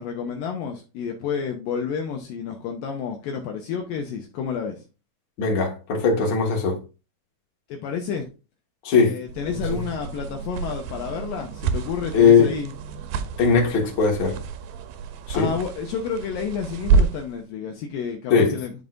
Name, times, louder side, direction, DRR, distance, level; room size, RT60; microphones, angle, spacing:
voice 1, 0.0-4.8 7.7-8.3 8.9-12.7 15.3-18.7, left 6 dB, 75° left, 2.4 m, -30 dB
voice 2, 5.4-6.8 8.8-9.2 9.5-9.8 12.1-12.5 13.4-14.4 15.3-15.5 18.3-18.5, left 5 dB, 40° left, 2.1 m, -19 dB
sound 1, 9.3-17.4, right 5 dB, 80° right, 2.5 m, -28 dB
11.0 x 5.3 x 2.6 m
omnidirectional pair, 4.5 m